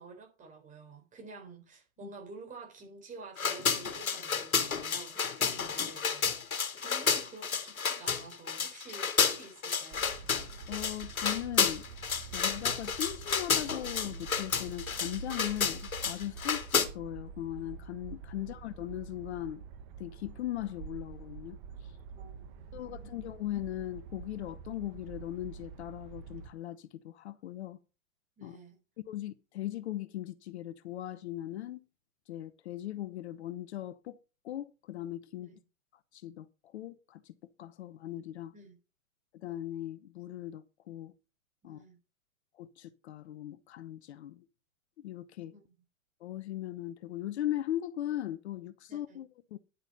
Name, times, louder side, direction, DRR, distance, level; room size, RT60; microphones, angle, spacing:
voice 1, 0.0-10.1 18.4-18.6 22.1-23.3 28.4-28.8 35.4-35.6 38.5-38.8 41.6-42.0 45.5-45.7 48.9-49.2, right 3 dB, 20° right, 4.0 m, -50 dB
sound 1, 3.4-16.9, left 6 dB, 80° left, 2.0 m, -31 dB
sound 2, 9.9-26.5, right 6 dB, 35° right, 1.4 m, -47 dB
voice 2, 10.7-11.8 12.3-19.6 20.0-21.6 22.7-27.8 28.4-28.6 29.0-31.8 32.3-34.2 34.4-35.5 36.1-36.5 36.7-37.3 37.6-38.5 39.4-41.1 41.6-41.8 42.6-44.4 45.0-45.5 46.2-49.6, left 13 dB, 50° left, 0.9 m, -39 dB
10.0 x 8.0 x 5.3 m
hypercardioid pair, 120°, 42 cm